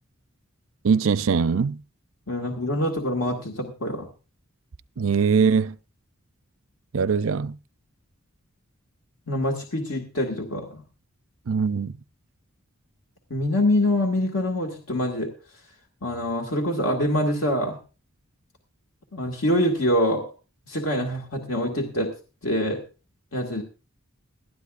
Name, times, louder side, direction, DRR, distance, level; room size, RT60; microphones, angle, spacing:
voice 1, 0.8-1.8 5.0-5.8 6.9-7.5 11.5-11.9, right 5 dB, 70° right, 0.5 m, -21 dB
voice 2, 2.3-4.1 9.3-10.8 13.3-15.3 16.0-17.8 19.1-20.2 20.7-22.1 22.4-22.8 23.3-23.6, left 1 dB, 70° left, 2.0 m, -25 dB
20.0 x 12.5 x 2.5 m
head